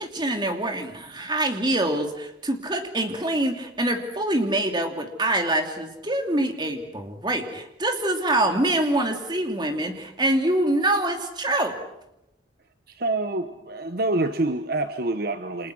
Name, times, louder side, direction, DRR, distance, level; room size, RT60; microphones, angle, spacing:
voice 1, 0.0-11.8, right 1 dB, 25° right, 4 dB, 2.8 m, -25 dB
voice 2, 12.9-15.7, right 2 dB, 50° right, 8 dB, 1.1 m, -26 dB
29.0 x 26.5 x 6.4 m, 0.86 s
head